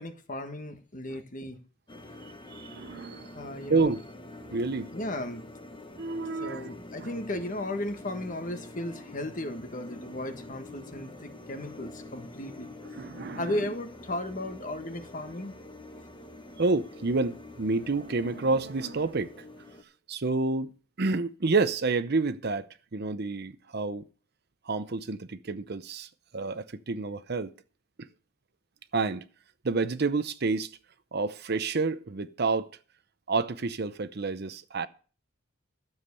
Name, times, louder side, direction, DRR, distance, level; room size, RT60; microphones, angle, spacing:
voice 1, 0.0-1.6 3.3-4.0 4.9-5.5 6.2-12.7 13.2-15.5, left 1 dB, 40° left, 1.5 m, -35 dB
sound 1, 1.9-19.8, left 1 dB, 25° left, 1.4 m, -46 dB
voice 2, 2.5-3.3 3.7-4.0 4.5-4.9 6.0-6.7 7.0-7.1 12.9-13.6 16.6-19.3 20.1-20.7 21.0-24.0 24.7-26.1 26.3-27.5 28.9-29.2 29.6-30.7 31.1-32.7 33.3-34.9, right 3 dB, 50° right, 0.7 m, -29 dB
13.0 x 7.3 x 6.8 m
head